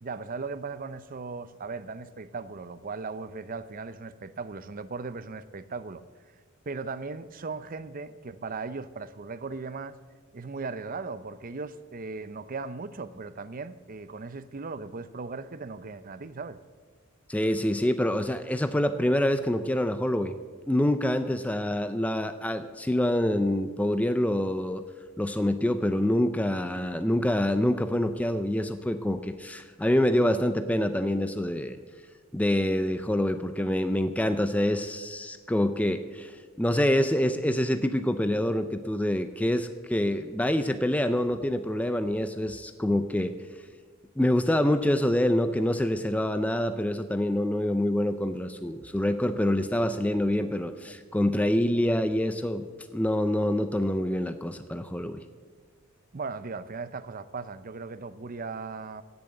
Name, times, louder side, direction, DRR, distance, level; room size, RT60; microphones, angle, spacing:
voice 1, 0.0-6.0 6.7-10.0 10.3-16.6 56.1-59.0, right 4 dB, 45° right, 14 dB, 0.6 m, -37 dB
voice 2, 17.3-20.3 20.7-24.8 25.2-31.8 32.3-36.3 36.6-43.4 44.2-52.7 52.9-55.2, left 1 dB, 5° left, 9 dB, 0.5 m, -26 dB
16.5 x 7.0 x 7.8 m, 1.5 s
head